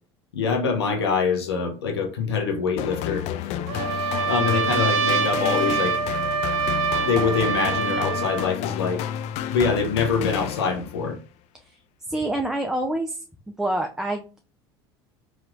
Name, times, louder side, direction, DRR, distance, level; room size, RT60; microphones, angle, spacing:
voice 1, 0.3-6.0 6.9-9.1 9.5-11.2, left 5 dB, 90° left, 0.8 m, -25 dB
sound 1, 2.8-11.1, left 10 dB, 60° left, 0.4 m, -31 dB
Trumpet, 3.7-8.5, right 5 dB, 60° right, 0.5 m, -25 dB
voice 2, 12.1-13.2 13.6-14.2, right 1 dB, 5° right, 0.4 m, -26 dB
3.1 x 2.9 x 2.4 m
hypercardioid pair, 75°, 13 cm